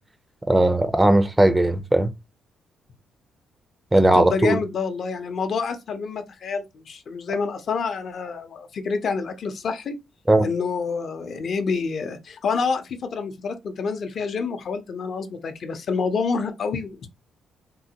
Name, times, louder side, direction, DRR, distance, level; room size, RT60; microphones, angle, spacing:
voice 1, 0.5-2.1 3.9-4.6 10.3-10.5, right 1 dB, 15° right, 0.4 m, -18 dB
voice 2, 4.1-10.0 10.4-17.1, left 5 dB, 55° left, 0.6 m, -27 dB
3.7 x 2.1 x 2.8 m
cardioid pair, 90°, 0 cm